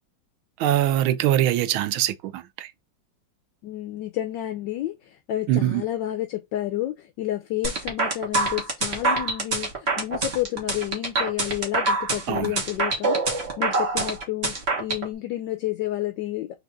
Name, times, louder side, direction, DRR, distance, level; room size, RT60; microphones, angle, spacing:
voice 1, 0.6-2.7 5.5-5.8 12.3-12.5, right 12 dB, 85° right, 1.4 m, -23 dB
voice 2, 3.6-16.5, left 14 dB, 75° left, 1.2 m, -30 dB
sound 1, 7.6-15.0, right 3 dB, 35° right, 1.4 m, -25 dB
4.0 x 3.5 x 3.5 m
omnidirectional pair, 2.2 m